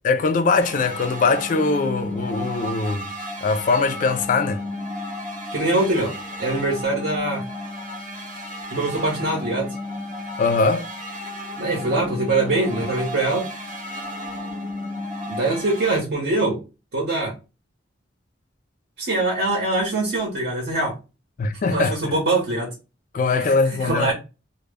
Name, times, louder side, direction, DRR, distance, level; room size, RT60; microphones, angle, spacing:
voice 1, 0.0-3.1 3.4-4.6 10.4-10.9 21.4-22.1 23.1-24.1, left 4 dB, 45° left, 0.3 m, -21 dB
sound 1, 0.6-16.0, left 1 dB, 40° right, 0.7 m, -33 dB
voice 2, 5.5-6.1 6.4-7.4 8.7-9.8 11.6-13.5 15.3-16.6 16.9-17.3 19.0-21.0 21.6-22.7 23.8-24.1, right 2 dB, 70° right, 0.8 m, -23 dB
2.1 x 2.0 x 3.3 m
head